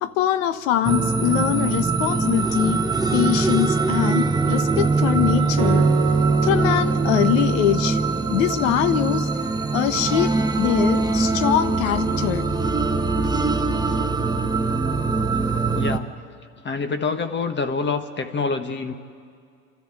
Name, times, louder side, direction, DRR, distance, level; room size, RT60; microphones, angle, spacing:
voice 1, 0.0-2.8 3.1-5.9 6.4-8.0 8.3-9.3 9.7-10.3 10.6-12.5, left 12 dB, 70° left, 13 dB, 1.2 m, -23 dB
sound 1, 0.8-16.0, right 3 dB, 10° right, 1.1 m, -22 dB
Acoustic guitar, 5.6-8.8, right 21 dB, 75° right, 0.7 m, -32 dB
voice 2, 15.3-16.1 16.6-18.9, left 4 dB, 25° left, 8 dB, 1.5 m, -27 dB
28.0 x 13.0 x 9.1 m, 2.3 s
hypercardioid pair, 90°, 39 cm